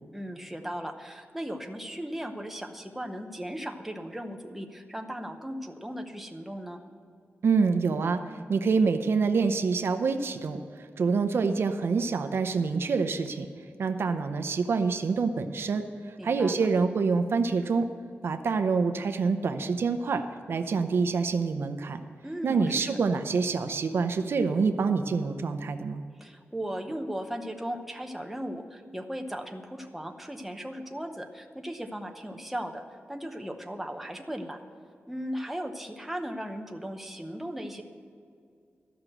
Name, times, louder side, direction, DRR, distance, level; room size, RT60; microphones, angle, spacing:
voice 1, 0.1-6.8 16.2-16.7 22.2-23.0 26.2-34.6 35.1-37.8, equal, 5° right, 4 dB, 0.8 m, -37 dB
voice 2, 7.4-8.2 8.5-13.5 13.8-17.9 18.2-22.0 22.4-26.0, right 4 dB, 65° right, 8 dB, 0.6 m, -26 dB
13.5 x 6.0 x 7.8 m, 2.3 s
wide cardioid pair, 165°, 4 cm